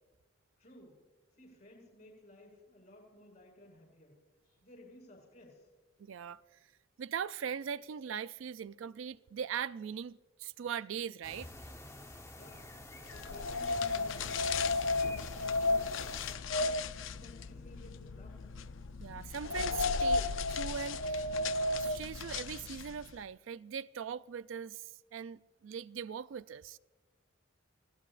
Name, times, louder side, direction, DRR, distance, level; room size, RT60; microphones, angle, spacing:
voice 1, 0.6-1.0 1.3-4.2 4.4-5.7 12.3-12.7 13.1-15.3 15.6-16.0 16.4-18.6, left 1 dB, 55° left, 5.7 m, -57 dB
voice 2, 6.0-6.4 7.0-11.5 15.9-16.0 19.0-21.3 21.8-26.8, right 7 dB, 70° right, 0.4 m, -40 dB
sound 1, 11.2-16.4, left 1 dB, 15° left, 1.1 m, -49 dB
sound 2, 13.1-23.1, left 3 dB, 70° left, 0.6 m, -34 dB
29.0 x 17.0 x 2.5 m
head